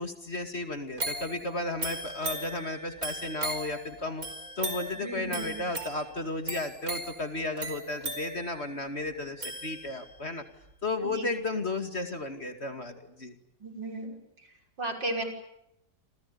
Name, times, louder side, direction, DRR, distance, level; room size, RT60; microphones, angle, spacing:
voice 1, 0.0-4.3 4.6-10.4 10.8-13.4, left 2 dB, 35° left, 7 dB, 2.6 m, -34 dB
sound 1, 1.0-10.2 10.7-10.8, right 2 dB, 50° right, 5.3 m, -38 dB
voice 2, 4.9-5.6 11.0-11.3 13.6-14.2 14.8-15.2, right 2 dB, 75° right, 3 dB, 6.6 m, -34 dB
29.5 x 27.5 x 7.0 m, 0.79 s
omnidirectional pair, 1.9 m